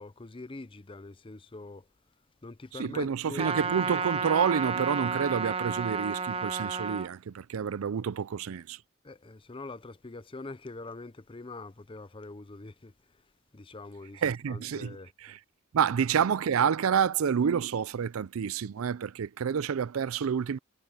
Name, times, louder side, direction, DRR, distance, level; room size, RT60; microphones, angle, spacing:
voice 1, 0.0-1.9 2.4-3.5 9.0-12.9 13.5-15.4, left 2 dB, 25° left, 0.6 m, -44 dB
voice 2, 2.7-8.8 14.2-15.0 15.2-15.4 15.7-20.6, right 7 dB, 75° right, 0.4 m, -28 dB
Trumpet, 3.4-7.1, right 5 dB, 25° right, 0.8 m, -31 dB
head